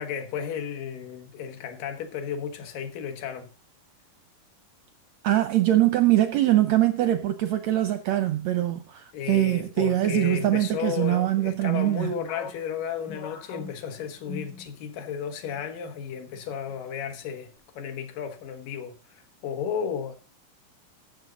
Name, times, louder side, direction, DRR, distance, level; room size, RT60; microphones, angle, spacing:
voice 1, 0.0-3.5 9.1-20.2, left 7 dB, 80° left, 3.0 m, -33 dB
voice 2, 5.2-12.1, right 14 dB, 80° right, 1.5 m, -23 dB
sound 1, 12.3-15.1 15.4-15.7 16.3-16.8, left 5 dB, 50° left, 1.2 m, -42 dB
15.0 x 6.5 x 3.9 m
omnidirectional pair, 3.8 m